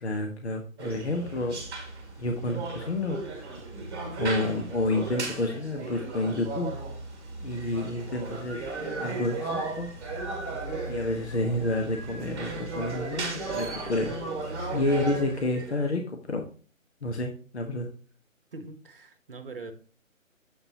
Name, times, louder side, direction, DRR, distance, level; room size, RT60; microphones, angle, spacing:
voice 1, 0.0-1.6 2.2-3.3 4.2-6.7 7.4-8.7 9.0-9.9 10.9-14.2 14.7-16.4 17.0-17.9, left 2 dB, 55° left, 1.2 m, -29 dB
sound 1, 0.8-15.9, right 3 dB, 20° right, 2.1 m, -35 dB
voice 2, 18.5-19.7, right 3 dB, 45° right, 1.2 m, -42 dB
7.6 x 6.9 x 2.8 m
figure-of-eight pair, 150°, 40 cm